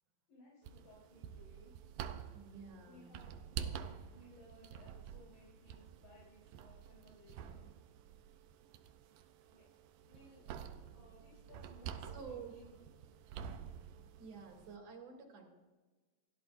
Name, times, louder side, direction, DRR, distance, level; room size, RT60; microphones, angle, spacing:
voice 1, 0.3-1.7 2.8-7.7 9.0-9.1 9.5-9.7 10.1-10.4 10.9-12.8 13.3-13.9, left 1 dB, 45° left, -6 dB, 4.9 m, -62 dB
sound 1, 0.6-14.8, right 8 dB, 85° right, 1.8 m, -49 dB
voice 2, 2.3-3.1 12.1-12.6 14.2-15.4, right 5 dB, 50° right, 0 dB, 4.2 m, -50 dB
28.0 x 13.0 x 2.6 m, 1.3 s
omnidirectional pair, 4.7 m